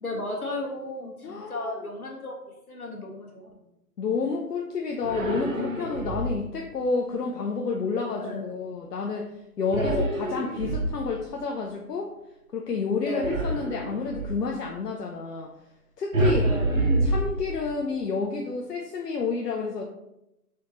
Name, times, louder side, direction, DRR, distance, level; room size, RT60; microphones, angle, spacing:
voice 1, 0.0-3.6 8.2-8.5 9.8-10.0 13.0-13.3 16.4-16.7, left 1 dB, 65° left, -2 dB, 1.4 m, -34 dB
voice 2, 1.0-1.8 4.0-9.3 9.6-12.1 12.5-15.5 16.0-16.5 17.0-19.9, left 4 dB, 80° left, 1 dB, 0.7 m, -30 dB
sound 1, 5.0-6.5 9.7-11.3 13.2-14.4 16.1-17.8, right 2 dB, 55° right, 0.8 m, -27 dB
4.2 x 3.6 x 3.0 m, 0.89 s
hypercardioid pair, 175°, 47 cm